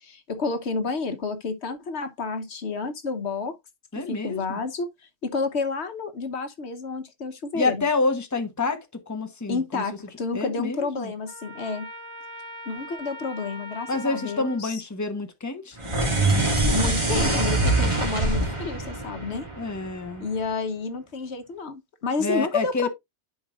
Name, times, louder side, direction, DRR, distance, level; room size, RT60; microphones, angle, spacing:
voice 1, 0.0-3.6 4.1-4.9 5.2-7.9 9.5-11.9 12.7-14.8 16.7-19.5 20.2-22.9, left 4 dB, 70° left, 1.3 m, -30 dB
voice 2, 3.9-4.6 7.5-9.8 10.3-11.1 13.9-15.8 19.6-20.3 22.2-22.9, left 3 dB, 15° left, 1.1 m, -28 dB
Trumpet, 11.3-14.6, equal, 75° right, 3.4 m, -41 dB
sound 1, 15.8-20.2, right 2 dB, 25° right, 2.0 m, -24 dB
11.0 x 4.9 x 2.5 m
omnidirectional pair, 1.1 m